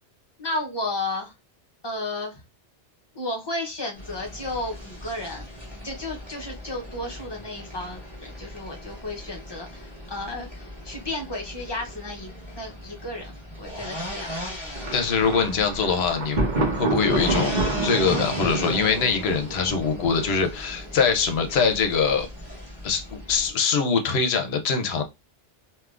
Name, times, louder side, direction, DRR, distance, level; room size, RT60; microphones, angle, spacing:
voice 1, 0.4-1.3 1.8-2.4 3.1-5.5 5.8-13.3 13.6-14.3, left 2 dB, 25° left, 0.7 m, -33 dB
sound 1, 3.9-23.5, left 1 dB, 5° right, 1.9 m, -38 dB
Thunder, 14.7-20.6, right 2 dB, 40° right, 1.1 m, -28 dB
voice 2, 14.9-16.4 16.8-22.3 22.8-25.0, left 5 dB, 65° left, 0.9 m, -23 dB
3.4 x 2.6 x 2.4 m
omnidirectional pair, 1.2 m